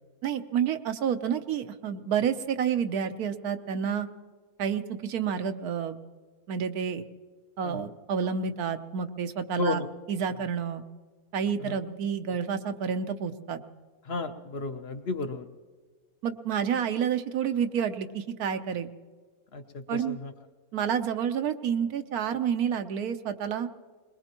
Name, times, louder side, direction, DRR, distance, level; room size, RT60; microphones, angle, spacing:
voice 1, 0.2-4.1 4.6-6.0 6.5-7.0 7.6-9.8 10.1-10.8 11.3-13.6 16.2-18.9 19.9-20.2 20.7-23.7, right 7 dB, 90° right, 8 dB, 1.3 m, -29 dB
voice 2, 14.0-15.4 19.5-20.3, left 3 dB, 50° left, 7 dB, 0.9 m, -33 dB
22.0 x 21.0 x 3.0 m, 1.5 s
omnidirectional pair, 1.5 m